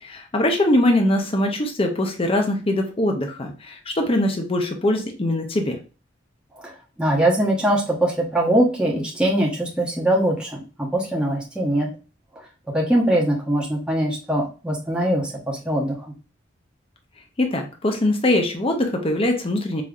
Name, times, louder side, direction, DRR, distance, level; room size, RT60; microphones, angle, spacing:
voice 1, 0.0-5.8 17.4-19.8, left 1 dB, 30° left, 4 dB, 0.6 m, -22 dB
voice 2, 7.0-11.9 12.7-16.0, right 1 dB, 5° right, -3 dB, 0.8 m, -22 dB
4.9 x 2.8 x 2.3 m, 0.34 s
head